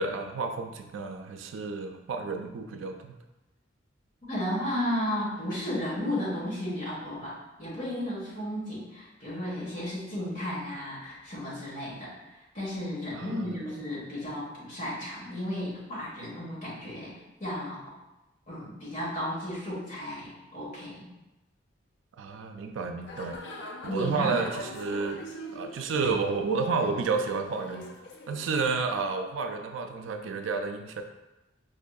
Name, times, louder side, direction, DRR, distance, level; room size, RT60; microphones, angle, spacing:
voice 1, 0.0-3.2 13.1-13.5 22.2-23.4 23.9-25.2 25.5-27.8 28.3-31.0, right 4 dB, 85° right, 6 dB, 0.3 m, -31 dB
voice 2, 4.3-12.1 12.5-17.8 18.5-21.1 23.9-24.4, left 1 dB, 45° left, -7 dB, 1.3 m, -34 dB
sound 1, 23.1-28.8, left 1 dB, 75° left, 0.5 m, -42 dB
4.6 x 2.6 x 2.3 m, 1.0 s
head